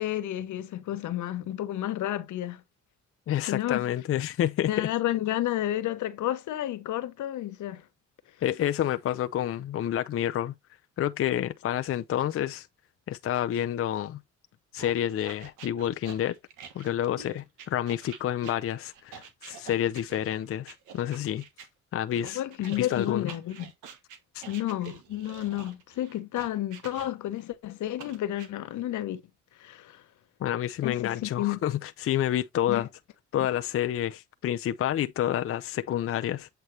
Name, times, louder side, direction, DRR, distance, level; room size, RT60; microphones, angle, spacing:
voice 1, 0.0-2.6 3.5-3.9 4.6-7.8 22.1-23.7 24.5-29.2 29.5-30.0 30.8-31.6 32.7-32.9, left 13 dB, 80° left, 1.0 m, -31 dB
voice 2, 3.3-4.9 8.4-10.5 11.0-12.7 13.1-14.2 14.7-16.4 16.7-21.4 21.9-22.4 22.8-23.3 24.3-24.4 30.4-32.9 33.3-36.5, left 11 dB, 45° left, 0.5 m, -29 dB
sound 1, 14.8-21.7 22.2-27.4 28.0-28.5, right 7 dB, 90° right, 1.4 m, -47 dB
8.1 x 4.4 x 3.1 m
cardioid pair, 90°, 30 cm